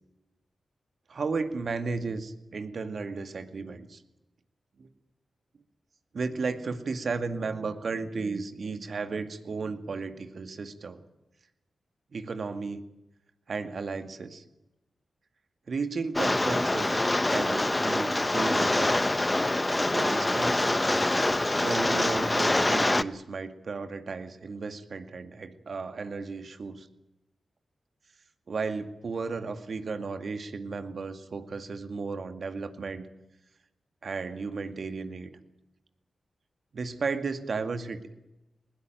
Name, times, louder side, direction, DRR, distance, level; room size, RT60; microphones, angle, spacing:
voice 1, 1.1-4.0 4.8-4.9 6.1-11.0 12.1-12.8 13.5-14.4 15.7-19.0 19.9-20.7 21.5-26.9 28.5-33.1 34.0-35.3 36.7-38.0, right 4 dB, 65° right, 8 dB, 2.1 m, -34 dB
Rain, 16.2-23.0, left 2 dB, 25° left, 1.0 m, -25 dB
20.0 x 17.5 x 9.1 m, 0.94 s
supercardioid pair, 40°, 0 cm